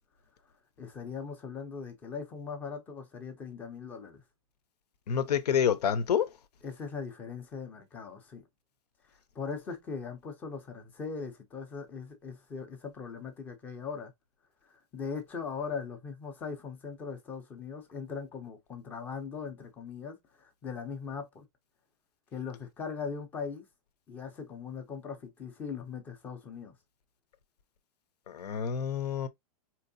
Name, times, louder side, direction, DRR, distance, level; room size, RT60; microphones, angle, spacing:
voice 1, 0.8-4.2 6.6-8.4 9.0-14.1 14.6-21.5 22.3-23.7 24.1-26.8, left 5 dB, 10° left, 0.5 m, -40 dB
voice 2, 5.1-6.3 28.3-29.3, left 8 dB, 90° left, 0.9 m, -28 dB
4.5 x 3.0 x 2.6 m
supercardioid pair, 175°, 20 cm